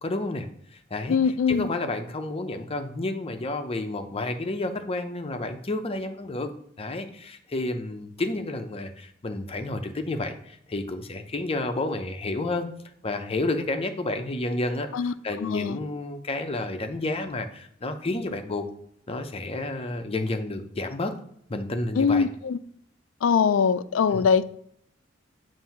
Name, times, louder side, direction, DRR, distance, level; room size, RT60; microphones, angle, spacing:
voice 1, 0.0-0.5 0.9-1.2 1.5-6.5 6.8-12.7 13.0-18.7 19.1-21.1 21.5-22.3 24.1-24.2, left 2 dB, 30° left, 0.6 m, -30 dB
voice 2, 1.1-1.7 14.9-15.8 22.0-22.6 23.2-24.4, left 6 dB, 85° left, 0.4 m, -22 dB
7.5 x 2.7 x 5.7 m
head